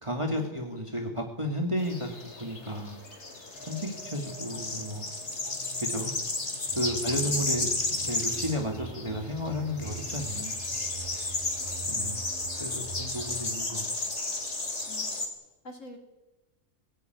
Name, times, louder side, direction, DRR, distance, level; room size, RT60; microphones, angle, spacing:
voice 1, 0.0-3.0 3.6-5.1 5.9-6.1 6.8-10.6 11.9-12.2 12.6-13.9, equal, 25° right, 2 dB, 2.4 m, -33 dB
sound 1, 1.8-15.3, left 2 dB, 60° left, 3.2 m, -33 dB
sound 2, 3.5-10.2, left 1 dB, 20° left, 6.0 m, -51 dB
voice 2, 5.9-6.4 7.1-7.4 11.6-12.3 14.9-15.3 15.6-16.0, left 2 dB, 75° left, 3 dB, 3.6 m, -49 dB
sound 3, 6.7-13.5, right 5 dB, 5° right, 5.5 m, -44 dB
22.0 x 16.5 x 9.4 m, 1.0 s
omnidirectional pair, 1.3 m